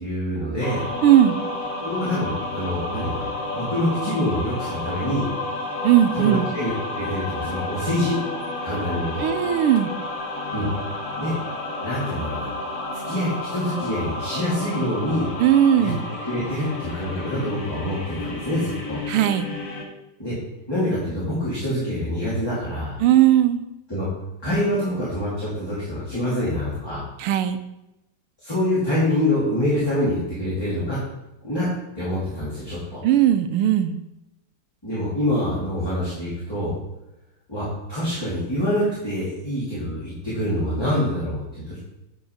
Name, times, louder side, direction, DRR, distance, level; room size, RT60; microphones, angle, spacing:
voice 1, 0.0-0.8 1.8-3.3 3.5-5.3 6.1-8.2 8.6-9.3 10.5-10.7 11.2-11.4 11.8-12.5 13.0-15.3 15.8-15.9 16.2-19.0 20.2-20.3 20.7-23.0 23.9-24.1 24.4-27.0 28.4-31.0 31.4-31.7 31.9-33.0 34.8-36.7 37.5-41.8, left 1 dB, 10° left, -10 dB, 2.5 m, -25 dB
sound 1, 0.6-19.8, left 2 dB, 60° left, 2.2 m, -31 dB
voice 2, 1.0-1.4 5.8-6.5 9.2-9.9 15.4-16.0 19.1-19.5 23.0-23.6 27.2-27.6 33.0-34.0, right 11 dB, 85° right, 10 dB, 1.6 m, -18 dB
9.2 x 4.9 x 5.1 m, 0.92 s
omnidirectional pair, 2.4 m